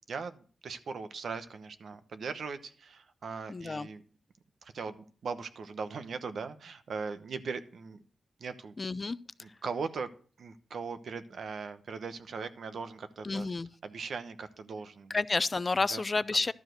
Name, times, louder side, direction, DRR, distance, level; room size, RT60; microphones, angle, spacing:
voice 1, 0.1-4.0 4.6-8.0 8.4-8.7 9.4-10.1 10.4-13.5 13.8-15.2 15.9-16.0, right 5 dB, 70° right, 0.9 m, -39 dB
voice 2, 3.5-3.9 8.8-9.2 13.2-13.7 15.1-16.5, left 3 dB, 35° left, 0.4 m, -30 dB
12.0 x 4.8 x 7.8 m
wide cardioid pair, 115°, 0 cm